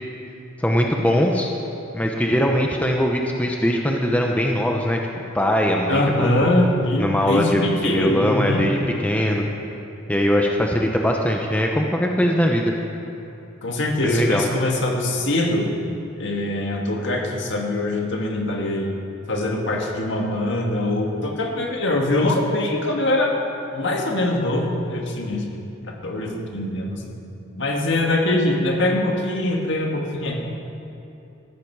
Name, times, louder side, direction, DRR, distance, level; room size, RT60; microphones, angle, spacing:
voice 1, 0.6-1.5 1.9-5.0 5.3-6.5 7.0-9.4 10.1-12.7 14.0-14.5, equal, 5° left, 1 dB, 0.8 m, -21 dB
voice 2, 5.9-8.7 13.6-15.7 16.2-18.9 19.3-23.3 23.7-25.4 25.9-27.0 27.6-30.4, left 1 dB, 60° left, 0 dB, 1.9 m, -23 dB
15.0 x 14.5 x 4.7 m, 2.8 s
head